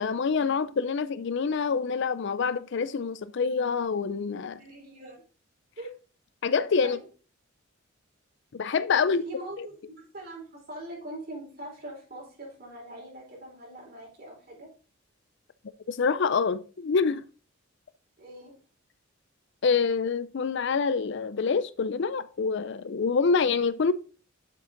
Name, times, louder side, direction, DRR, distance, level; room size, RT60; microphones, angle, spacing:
voice 1, 0.0-4.6 6.4-7.0 8.5-9.2 9.6-9.7 15.9-17.2 19.6-23.9, left 5 dB, 60° left, 0.4 m, -26 dB
voice 2, 4.6-5.2 5.8-5.9 6.8-7.0 8.9-14.7 18.2-18.5, right 1 dB, 45° right, 4.5 m, -42 dB
7.5 x 6.3 x 3.8 m
head